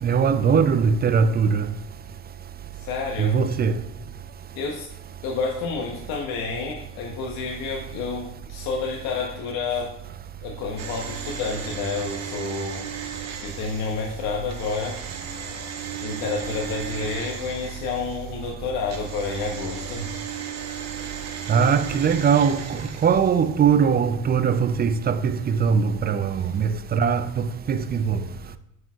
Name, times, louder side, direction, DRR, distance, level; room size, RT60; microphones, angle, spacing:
voice 1, 0.0-1.7 3.2-3.8 21.5-28.2, right 6 dB, 25° right, 0.5 m, -21 dB
voice 2, 2.8-3.4 4.6-4.9 5.2-9.9 10.4-12.9 13.4-15.0 16.0-20.2 26.3-26.5, left 4 dB, 70° left, 1.2 m, -29 dB
sound 1, 10.8-18.4 18.9-23.6 23.8-23.9, right 7 dB, 40° right, 1.2 m, -36 dB
8.8 x 6.5 x 2.4 m
supercardioid pair, 85°, 40 cm